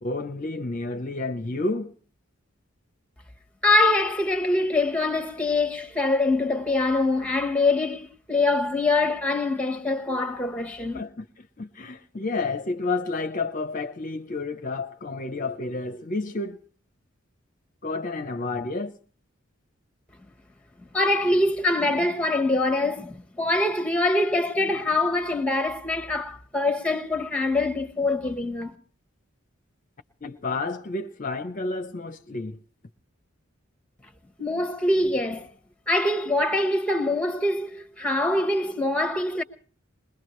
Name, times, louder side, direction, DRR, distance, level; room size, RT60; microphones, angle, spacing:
voice 1, 0.0-1.9 10.9-11.3 11.6-16.6 17.8-18.9 30.2-32.6, left 3 dB, 40° left, 0.7 m, -30 dB
voice 2, 3.6-11.0 20.9-28.7 34.4-35.5 35.9-39.4, left 2 dB, 5° left, 1.2 m, -24 dB
21.5 x 21.0 x 3.1 m
head